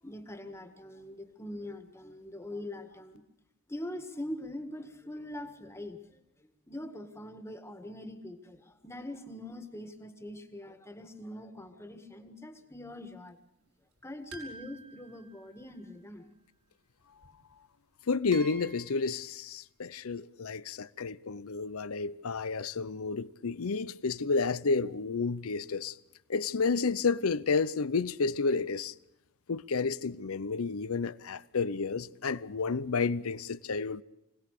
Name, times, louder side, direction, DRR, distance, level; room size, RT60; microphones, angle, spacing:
voice 1, 0.0-3.2 3.7-13.4 14.0-16.3, left 1 dB, 10° left, 1.8 m, -43 dB
sound 1, 14.3-15.8 17.2-17.3 18.3-19.1, right 3 dB, 75° right, 5.5 m, -49 dB
voice 2, 18.1-26.0 26.3-28.9 29.5-34.0, left 4 dB, 75° left, 0.7 m, -31 dB
25.5 x 18.5 x 6.6 m
head